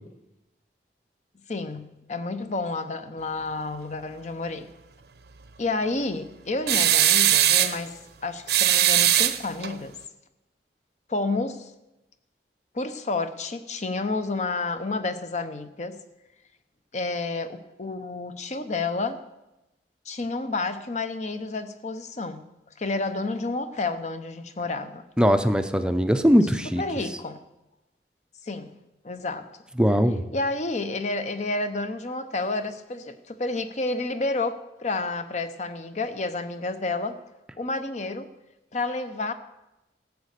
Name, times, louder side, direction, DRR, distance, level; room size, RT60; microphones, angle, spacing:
voice 1, 1.5-4.7 5.6-9.9 11.1-11.7 12.7-16.0 16.9-19.2 20.1-22.4 22.8-25.0 26.8-27.4 28.4-28.7 29.0-29.5 30.3-37.2 37.6-38.3 38.7-39.3, left 3 dB, 40° left, 10 dB, 0.8 m, -30 dB
sound 1, 6.7-7.8 8.5-9.7, right 12 dB, 65° right, 0.7 m, -20 dB
voice 2, 25.2-26.8 29.8-30.2, equal, 5° right, 9 dB, 0.6 m, -20 dB
14.0 x 8.3 x 6.6 m, 0.97 s
head